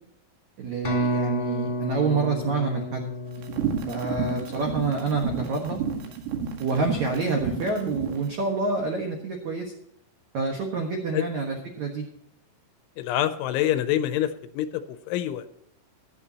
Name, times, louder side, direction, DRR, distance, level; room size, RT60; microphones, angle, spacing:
voice 1, 0.6-3.1 3.9-5.8 6.6-9.7 10.3-12.0, right 4 dB, 85° right, 2 dB, 1.6 m, -27 dB
sound 1, 0.8-4.6, equal, 15° left, 2.4 m, -31 dB
sound 2, 3.4-8.2, right 7 dB, 65° right, 3.7 m, -31 dB
voice 2, 13.0-14.8 15.1-15.5, left 12 dB, 80° left, 11 dB, 3.0 m, -26 dB
15.5 x 11.5 x 2.9 m, 0.77 s
omnidirectional pair, 5.7 m